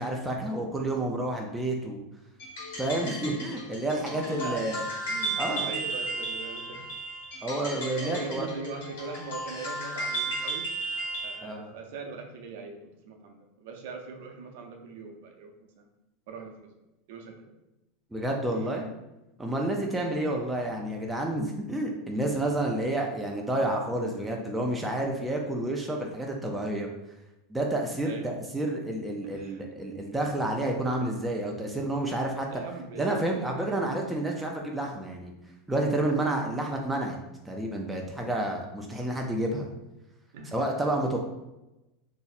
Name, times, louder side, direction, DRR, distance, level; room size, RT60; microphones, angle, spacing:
voice 1, 0.0-2.0 2.8-4.8 5.4-5.7 7.4-8.5 11.4-11.7 18.1-18.9 19.4-26.9 27.5-32.5 33.0-35.3 35.7-37.2 37.5-39.7 40.5-41.2, right 1 dB, 5° right, 0 dB, 0.3 m, -30 dB
sound 1, 2.4-11.4, right 2 dB, 85° left, 1.3 m, -34 dB
voice 2, 4.1-6.9 7.6-10.7 11.2-15.9 16.3-16.7 17.1-17.5 18.5-18.7 19.9-20.3 28.1-28.4 29.2-29.6 32.5-33.6 40.3-40.8, right 4 dB, 65° right, 3 dB, 0.5 m, -41 dB
2.6 x 2.0 x 3.9 m, 0.95 s
supercardioid pair, 165°, 0 cm